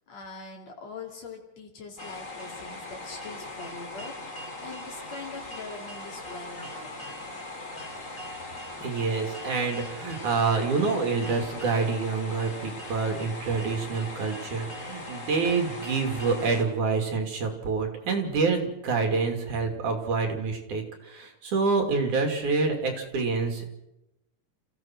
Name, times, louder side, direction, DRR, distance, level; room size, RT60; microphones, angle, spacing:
voice 1, 0.1-7.2, left 4 dB, 60° left, 1 dB, 3.7 m, -43 dB
sound 1, 2.0-16.6, left 2 dB, 25° left, 3.1 m, -40 dB
voice 2, 8.8-23.7, right 4 dB, 90° right, 4 dB, 4.2 m, -27 dB
27.5 x 15.5 x 6.1 m, 0.90 s
omnidirectional pair, 3.4 m